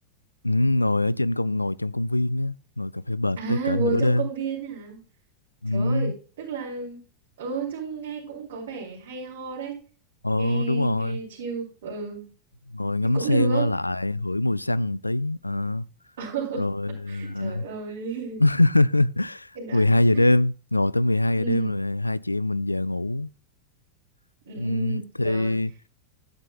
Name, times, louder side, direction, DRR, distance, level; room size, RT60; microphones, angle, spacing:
voice 1, 0.4-4.3 5.6-6.1 10.2-11.2 12.7-15.9 16.6-17.7 18.4-23.3 24.6-25.7, left 1 dB, 85° left, 0.3 m, -23 dB
voice 2, 3.4-5.0 5.7-7.0 7.4-9.7 10.4-12.3 13.1-13.7 16.2-16.6 17.1-18.4 19.5-20.3 21.4-21.7 24.4-25.6, right 5 dB, 55° right, 3.2 m, -32 dB
11.5 x 8.9 x 2.3 m
figure-of-eight pair, 90°, 0 cm